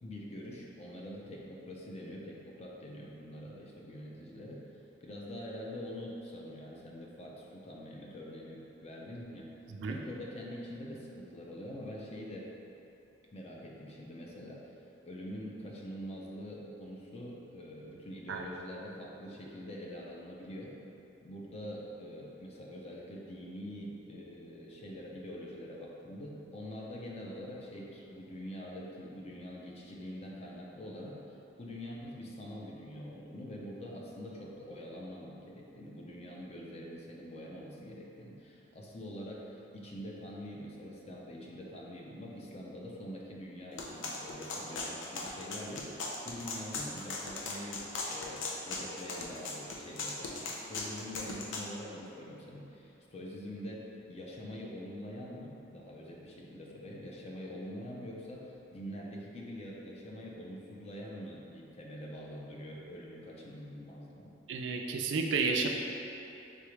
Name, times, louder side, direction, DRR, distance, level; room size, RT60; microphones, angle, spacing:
voice 1, 0.0-4.6 5.0-9.5 9.9-12.6 13.3-14.7 15.0-20.8 21.2-31.2 31.6-64.3, equal, 35° left, -2 dB, 0.5 m, -45 dB
sound 1, 43.8-51.7, left 3 dB, 85° left, 0.5 m, -38 dB
voice 2, 64.5-65.7, right 4 dB, 75° right, 2 dB, 0.4 m, -31 dB
3.8 x 3.5 x 3.1 m, 2.9 s
head